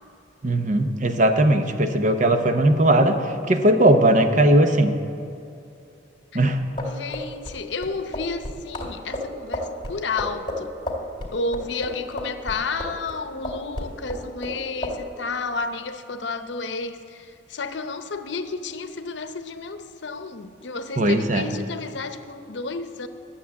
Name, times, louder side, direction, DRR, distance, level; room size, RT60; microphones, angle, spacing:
voice 1, 0.4-3.2 3.5-4.9 6.3-6.6 21.0-21.5, right 1 dB, 40° right, 7 dB, 0.8 m, -18 dB
voice 2, 6.8-10.7 11.3-23.1, left 3 dB, 75° left, 9 dB, 0.7 m, -31 dB
sound 1, 6.8-13.2 13.4-14.6 14.8-15.0, left 1 dB, 25° left, 2.2 m, -31 dB
12.0 x 7.3 x 8.4 m, 2.6 s
head